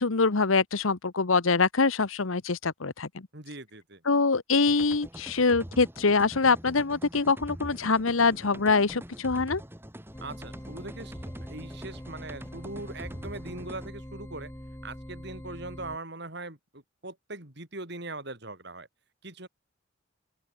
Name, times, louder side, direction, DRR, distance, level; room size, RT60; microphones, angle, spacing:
voice 1, 0.0-3.3 4.0-9.6, left 4 dB, 85° left, 1.1 m, -24 dB
voice 2, 3.3-4.0 10.2-14.5 14.8-18.9 19.2-19.5, right 2 dB, 55° right, 4.8 m, -41 dB
sound 1, 4.7-13.9, equal, 10° right, 3.5 m, -44 dB
sound 2, 10.1-16.0, equal, 10° left, 2.0 m, -43 dB
open air
head